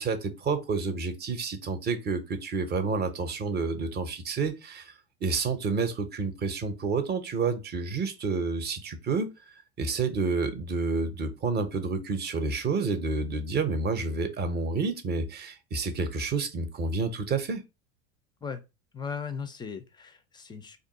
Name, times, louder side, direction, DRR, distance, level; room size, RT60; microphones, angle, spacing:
voice 1, 0.0-4.9 5.2-9.3 9.8-17.6, right 4 dB, 25° right, 0.6 m, -29 dB
voice 2, 18.9-20.8, left 6 dB, 15° left, 0.3 m, -37 dB
2.5 x 2.2 x 3.7 m
hypercardioid pair, 90°, 36 cm